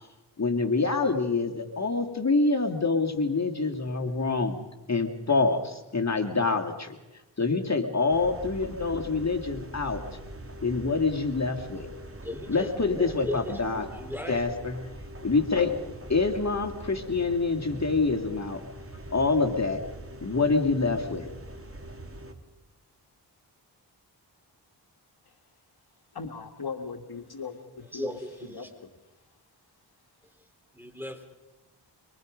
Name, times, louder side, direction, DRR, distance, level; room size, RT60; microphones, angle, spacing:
voice 1, 0.4-4.6 4.9-7.0 7.4-10.0 10.6-11.9 12.5-13.9 14.3-14.8 15.2-15.7 16.1-18.6 19.1-19.8 20.2-21.3, left 3 dB, 35° left, 3 dB, 2.7 m, -26 dB
sound 1, 8.1-22.3, right 1 dB, 30° right, 2.9 m, -43 dB
voice 2, 12.2-13.6 13.9-14.6 27.9-28.7 30.7-31.3, left 1 dB, 5° right, 6 dB, 3.8 m, -37 dB
voice 3, 26.1-28.1 28.5-28.9, left 5 dB, 60° left, 6 dB, 1.9 m, -39 dB
25.0 x 24.0 x 5.3 m, 1.1 s
cardioid pair, 50°, 44 cm